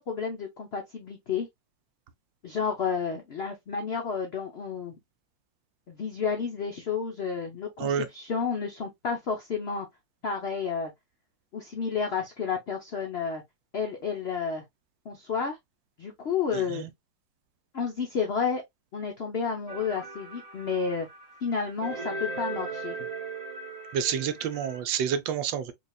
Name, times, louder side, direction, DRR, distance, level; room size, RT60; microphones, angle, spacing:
voice 1, 0.0-1.5 2.4-4.9 5.9-9.9 10.2-10.9 11.5-13.4 13.7-14.6 15.0-15.6 16.0-16.9 17.7-18.6 18.9-21.1 21.4-23.0, left 6 dB, 90° left, 0.5 m, -31 dB
sound 1, 19.7-24.8, right 3 dB, 65° right, 0.3 m, -38 dB
voice 2, 23.9-25.7, right 8 dB, 85° right, 1.3 m, -28 dB
5.0 x 2.4 x 2.3 m
omnidirectional pair, 2.0 m